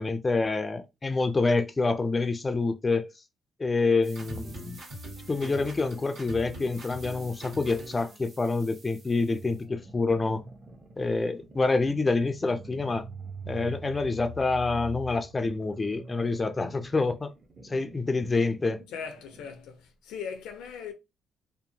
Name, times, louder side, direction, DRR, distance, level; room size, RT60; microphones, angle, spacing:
voice 1, 0.0-3.1 3.6-4.8 5.3-10.4 11.0-13.1 13.5-17.3 17.6-18.8, left 3 dB, 25° left, 0.3 m, -27 dB
sound 1, 4.0-9.6, right 3 dB, 55° right, 0.9 m, -53 dB
sound 2, 4.1-8.2, equal, 90° right, 1.5 m, -42 dB
sound 3, 9.1-19.6, right 1 dB, 35° right, 0.6 m, -45 dB
voice 2, 18.9-20.9, left 6 dB, 90° left, 0.5 m, -39 dB
2.8 x 2.1 x 2.6 m
cardioid pair, 90°, 0 cm